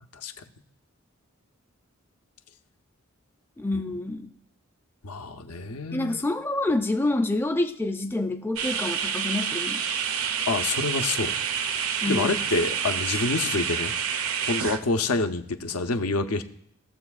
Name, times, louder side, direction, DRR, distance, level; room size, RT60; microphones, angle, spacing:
voice 1, 3.6-4.3 5.9-9.8 12.0-12.4, left 2 dB, 10° left, 6 dB, 0.4 m, -27 dB
voice 2, 5.0-6.2 10.5-11.4 12.1-13.9 14.4-16.4, left 3 dB, 85° left, 7 dB, 0.7 m, -27 dB
sound 1, 8.6-14.8, right 7 dB, 75° right, 0.7 m, -28 dB
18.0 x 7.0 x 2.4 m, 0.72 s
head